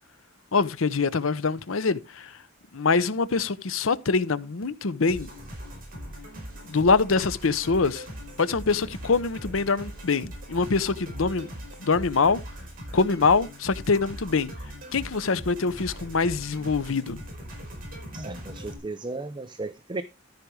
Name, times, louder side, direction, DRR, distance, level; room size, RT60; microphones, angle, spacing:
voice 1, 0.5-2.4 2.7-5.3 6.6-8.1 8.4-11.5 11.8-12.4 12.9-14.5 14.9-17.2, left 4 dB, 90° left, 0.7 m, -24 dB
sound 1, 5.1-18.8, equal, 45° right, 4.9 m, -40 dB
voice 2, 18.1-20.0, right 3 dB, 25° right, 0.5 m, -35 dB
13.0 x 5.1 x 4.7 m
head